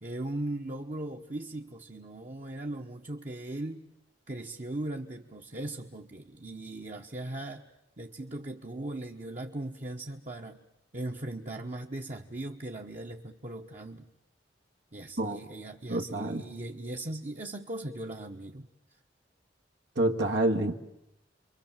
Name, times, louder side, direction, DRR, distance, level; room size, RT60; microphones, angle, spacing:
voice 1, 0.0-3.9 4.3-7.6 8.0-10.6 10.9-14.1 14.9-18.7, right 1 dB, 40° right, 1 dB, 1.1 m, -38 dB
voice 2, 15.9-16.4 20.0-20.8, right 2 dB, 80° right, 2 dB, 1.8 m, -27 dB
29.0 x 23.5 x 7.4 m, 0.84 s
head